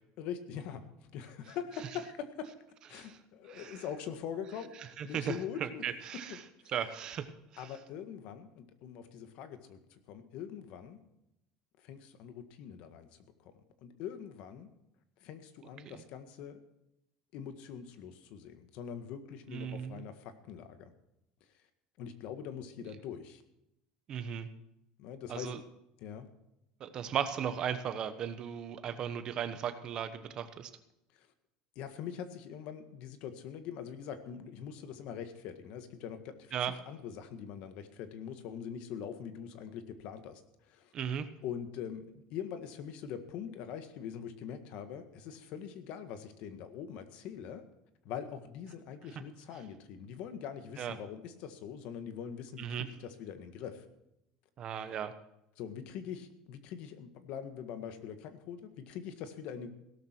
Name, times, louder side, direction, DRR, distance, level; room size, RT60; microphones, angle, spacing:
voice 1, 0.2-2.5 2.9-4.7 5.0-5.9 6.3-6.7 7.6-9.8 10.1-11.0 11.8-13.5 13.8-14.7 15.2-16.6 17.3-20.9 22.0-23.4 25.0-25.5 26.0-26.3 31.1-31.3 31.8-36.5 36.9-40.4 40.7-40.9 41.4-47.6 48.1-53.8 55.6-59.7, left 8 dB, 50° left, 9 dB, 1.8 m, -43 dB
voice 2, 3.5-3.8 5.0-6.4 6.7-7.3 7.5-7.6 19.5-20.1 24.1-24.5 25.3-25.6 26.8-30.7 36.5-36.7 40.9-41.3 50.8-50.9 52.6-52.9 54.6-55.1, right 8 dB, 35° right, 10 dB, 1.2 m, -36 dB
17.0 x 12.5 x 4.6 m, 0.84 s
cardioid pair, 165°, 2 cm